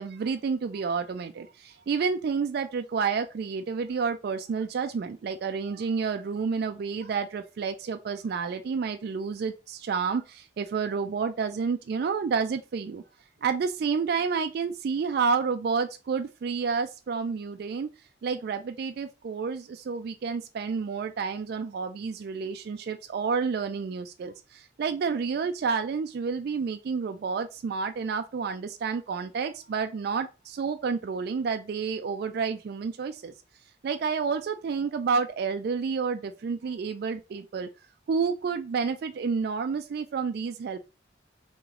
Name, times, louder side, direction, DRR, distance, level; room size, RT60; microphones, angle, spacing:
voice 1, 0.0-13.0 13.4-17.9 18.2-33.3 33.8-37.7 38.1-40.8, right 5 dB, 55° right, 0.3 m, -30 dB
3.1 x 2.9 x 3.6 m
head